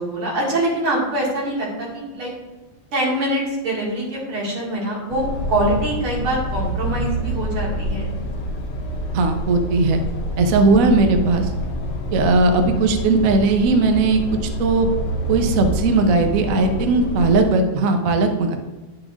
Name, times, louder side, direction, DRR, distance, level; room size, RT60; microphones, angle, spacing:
voice 1, 0.0-2.3 2.9-8.1, right 1 dB, 90° right, -4 dB, 3.0 m, -24 dB
sound 1, 5.1-17.4, equal, 85° left, 0.5 m, -27 dB
voice 2, 9.1-10.0 10.4-11.5 12.1-14.2 14.6-14.9 15.3-18.6, right 3 dB, 60° right, 5 dB, 0.9 m, -18 dB
9.9 x 6.1 x 2.5 m, 1.2 s
omnidirectional pair, 2.3 m